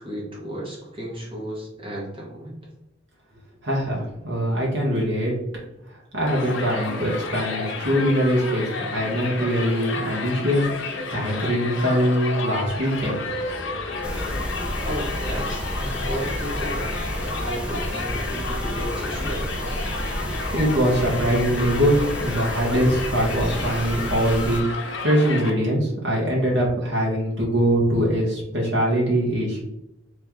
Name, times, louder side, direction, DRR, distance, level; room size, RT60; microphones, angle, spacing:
voice 1, 0.0-2.6 14.8-16.9 17.3-19.5, equal, 30° right, -3 dB, 1.2 m, -33 dB
voice 2, 3.6-5.3 5.9-13.2 20.5-29.6, equal, 75° right, -4 dB, 1.2 m, -22 dB
Crowd, 6.3-25.5, left 3 dB, 75° left, 0.7 m, -31 dB
sound 1, 12.9-21.2, equal, 20° left, 1.1 m, -41 dB
sound 2, 14.0-24.6, equal, 5° right, 0.3 m, -31 dB
3.4 x 3.0 x 3.5 m, 0.85 s
head